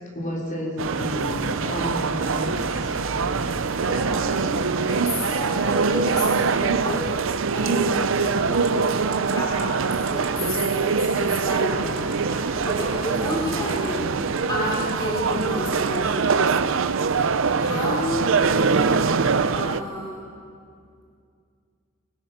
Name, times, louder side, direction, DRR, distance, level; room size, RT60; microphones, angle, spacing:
voice 1, 0.0-3.0 17.6-17.9, left 1 dB, 40° left, -3 dB, 4.4 m, -31 dB
sound 1, 0.8-18.4, equal, 10° right, 2.9 m, -39 dB
sound 2, 0.8-19.8, right 5 dB, 70° right, 0.6 m, -23 dB
voice 2, 3.8-7.2 7.5-8.9 9.3-9.6 10.1-14.2 14.5-16.6 17.6-19.1 19.5-20.3, left 1 dB, 20° left, -3 dB, 3.2 m, -31 dB
sound 3, 8.6-8.9 9.1-9.3 9.6-9.8 10.1-10.3 10.5-10.6 11.8-12.1 12.5-12.8 13.2-13.9 14.2-14.9 15.3-16.0 16.4-16.5, right 7 dB, 90° right, 2.5 m, -42 dB
24.0 x 20.0 x 5.8 m, 2.3 s
head